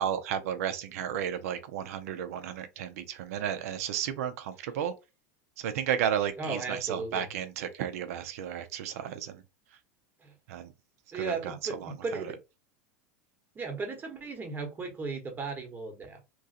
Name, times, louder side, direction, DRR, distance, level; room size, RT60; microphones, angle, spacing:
voice 1, 0.0-4.9 5.6-9.4 10.5-10.7 11.1-12.3, right 9 dB, 70° right, 0.7 m, -33 dB
voice 2, 6.4-7.3 10.2-10.3 11.1-12.4 13.5-16.2, right 4 dB, 25° right, 1.1 m, -36 dB
3.0 x 2.4 x 2.8 m
hypercardioid pair, 100°, 8 cm